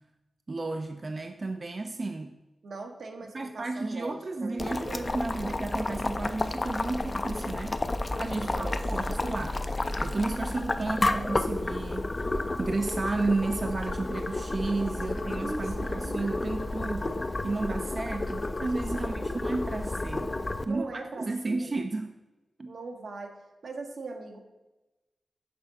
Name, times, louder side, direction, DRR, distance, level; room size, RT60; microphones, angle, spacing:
voice 1, 0.5-2.3 3.3-7.8 8.2-9.7 10.0-12.2 12.6-20.3 20.6-22.1 22.6-22.7, right 3 dB, 40° right, 6 dB, 0.3 m, -33 dB
voice 2, 2.6-5.1 8.4-8.8 9.1-9.2 15.0-16.3 18.9-19.4 20.7-21.7 22.7-23.4 23.6-24.4, right 3 dB, 75° right, 3 dB, 1.0 m, -41 dB
Boiling, 4.6-20.7, left 2 dB, 30° left, 0.3 m, -31 dB
6.5 x 3.6 x 5.4 m, 1.1 s
wide cardioid pair, 75°, 0 cm